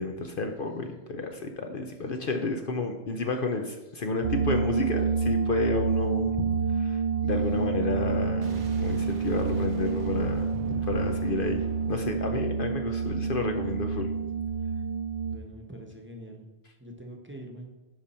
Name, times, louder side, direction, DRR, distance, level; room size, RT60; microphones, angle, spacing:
voice 1, 0.0-11.6 11.9-14.1, left 3 dB, 55° left, 4 dB, 0.8 m, -31 dB
sound 1, 4.2-15.4, right 5 dB, 60° right, 0.7 m, -28 dB
Boom, 8.4-13.3, right 3 dB, 75° right, 1.3 m, -44 dB
voice 2, 15.2-16.5 16.8-17.7, right 1 dB, 10° right, 1 dB, 1.0 m, -44 dB
10.5 x 5.3 x 4.3 m, 1.2 s
omnidirectional pair, 1.2 m